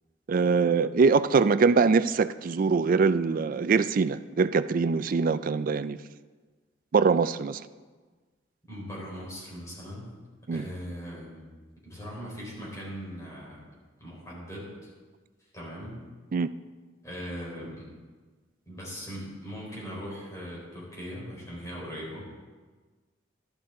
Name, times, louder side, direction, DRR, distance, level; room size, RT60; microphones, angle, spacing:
voice 1, 0.3-6.0 6.9-7.6 10.5-10.7 16.3-16.5, right 4 dB, 45° right, 0.4 m, -23 dB
voice 2, 8.7-10.1 10.5-11.5 11.8-13.7 14.0-14.9 15.5-16.0 17.0-17.9 18.7-22.3, equal, 15° left, 4.3 m, -40 dB
12.5 x 11.5 x 3.8 m
head